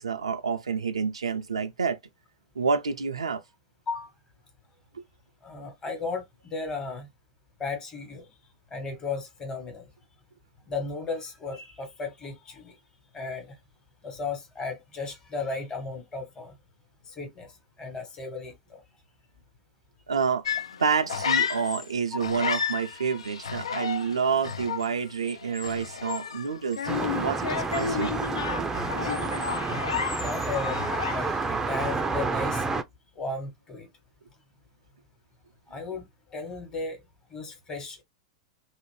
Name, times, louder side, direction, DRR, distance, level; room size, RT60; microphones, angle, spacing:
voice 1, 0.0-2.0 2.6-3.4 4.9-5.0 20.1-20.4 20.8-28.1, right 5 dB, 90° right, 0.3 m, -28 dB
voice 2, 5.4-7.1 7.6-8.3 8.7-9.9 10.7-12.8 13.1-13.6 14.0-16.5 17.1-18.8 22.1-22.2 30.2-32.7 33.1-33.9 35.7-37.0 37.3-38.0, left 3 dB, 25° left, 1.2 m, -35 dB
sound 1, 20.4-21.9 22.2-31.5 31.8-32.2, left 7 dB, 85° left, 0.3 m, -32 dB
sound 2, 26.9-32.8, right 4 dB, 15° right, 0.4 m, -30 dB
2.4 x 2.0 x 3.2 m
hypercardioid pair, 95°, 3 cm